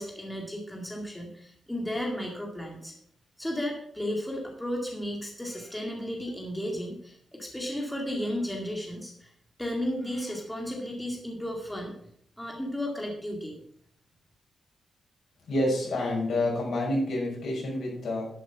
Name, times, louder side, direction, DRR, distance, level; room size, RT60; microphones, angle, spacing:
voice 1, 0.0-2.9 3.4-9.3 9.6-12.0 12.4-13.6, equal, 5° left, 0 dB, 2.3 m, -34 dB
voice 2, 15.5-18.3, left 1 dB, 70° left, -2 dB, 6.3 m, -28 dB
11.5 x 7.8 x 5.9 m, 0.66 s
wide cardioid pair, 145°, 0 cm